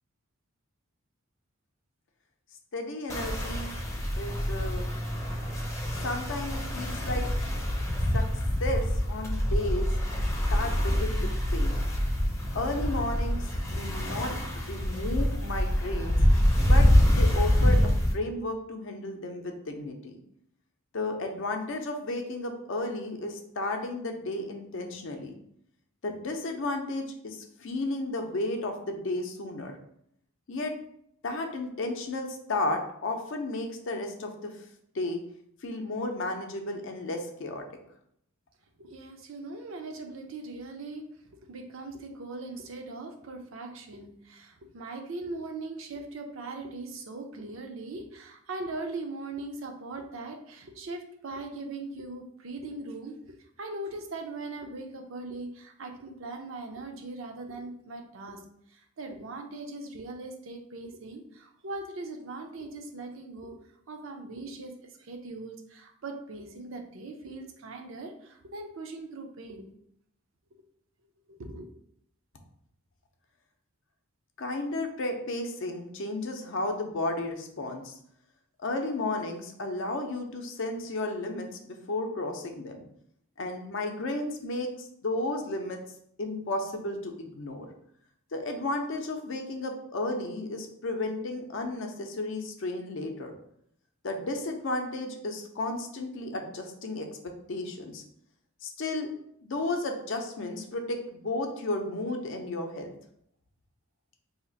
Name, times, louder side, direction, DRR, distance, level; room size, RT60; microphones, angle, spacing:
voice 1, 2.7-3.7 4.2-4.9 6.0-7.3 8.1-8.3 8.6-9.9 10.5-11.8 12.5-16.2 16.7-20.2 20.9-25.3 26.0-29.8 30.5-30.7 31.2-34.5 34.9-35.2 35.6-37.6 74.4-78.0 78.6-82.8 83.4-85.8 86.2-87.7 88.3-93.3 94.0-97.1 97.5-98.0 98.6-99.1 99.4-102.9, left 2 dB, 60° left, 4 dB, 0.5 m, -33 dB
sound 1, 3.1-18.1, equal, 15° left, 0.6 m, -26 dB
voice 2, 38.8-41.0 41.5-53.1 53.6-58.4 58.7-63.6 63.9-69.7 71.3-71.7, right 2 dB, 65° right, 4 dB, 0.5 m, -40 dB
2.8 x 2.4 x 3.9 m, 0.71 s
head